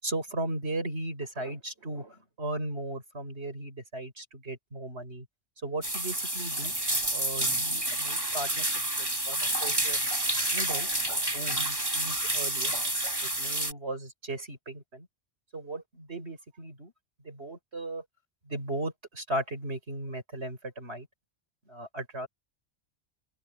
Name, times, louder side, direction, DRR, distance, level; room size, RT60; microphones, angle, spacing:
voice 1, 0.0-5.3 5.6-6.7 7.1-10.0 10.4-10.9 11.3-12.7 13.2-15.1 15.5-16.9 17.2-18.0 18.5-21.1 21.7-22.3, right 1 dB, 75° right, 6.0 m, -37 dB
sound 1, 5.8-13.7, right 1 dB, 20° right, 2.7 m, -29 dB
open air
omnidirectional pair, 1.1 m